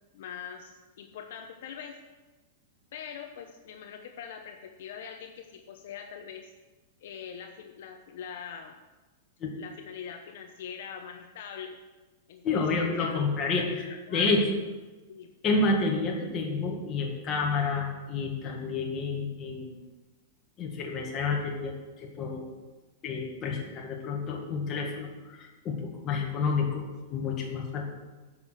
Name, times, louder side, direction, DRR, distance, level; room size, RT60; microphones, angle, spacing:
voice 1, 0.1-2.0 2.9-6.5 7.0-8.7 9.5-11.8 12.3-13.2 13.6-14.3 15.1-15.3, left 7 dB, 65° left, 4 dB, 0.9 m, -43 dB
voice 2, 12.4-14.5 15.4-19.7 20.6-22.4 23.0-27.9, left 3 dB, 25° left, 0 dB, 1.9 m, -29 dB
9.6 x 6.2 x 6.5 m, 1.2 s
supercardioid pair, 155°, 0 cm